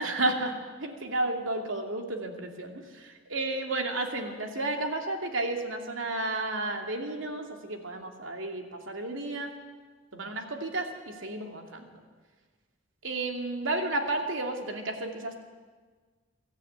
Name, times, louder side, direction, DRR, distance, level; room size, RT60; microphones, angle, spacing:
voice 1, 0.0-9.5 10.1-11.9 13.0-15.4, right 2 dB, 85° right, 3 dB, 2.7 m, -32 dB
23.0 x 13.5 x 9.3 m, 1.4 s
head